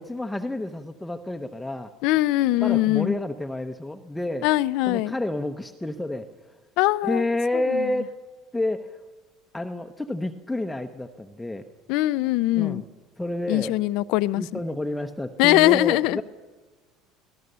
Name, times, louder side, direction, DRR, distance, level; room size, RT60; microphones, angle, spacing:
voice 1, 0.0-1.9 2.6-4.5 4.9-6.6 7.0-8.2 8.5-9.0 9.5-11.7 12.5-12.8 13.2-13.8 14.3-16.2, left 1 dB, 10° left, 1.0 m, -29 dB
voice 2, 2.0-3.2 4.4-5.1 6.8-7.2 7.7-7.9 11.9-12.8 13.5-14.4 15.4-16.2, left 17 dB, 70° left, 0.5 m, -21 dB
23.5 x 17.0 x 6.8 m
supercardioid pair, 90°, 0 cm